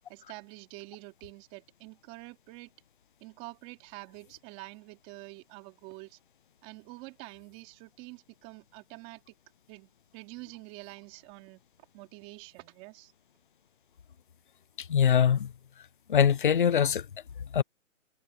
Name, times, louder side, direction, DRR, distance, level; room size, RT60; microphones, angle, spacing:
voice 1, 0.1-2.7 3.2-6.2 6.6-9.4 9.7-11.6 11.9-13.1, right 23 dB, 20° right, 3.0 m, -47 dB
voice 2, 14.8-15.5 16.1-17.1 17.5-17.6, left 8 dB, 40° left, 0.5 m, -23 dB
hypercardioid pair, 165°, 39 cm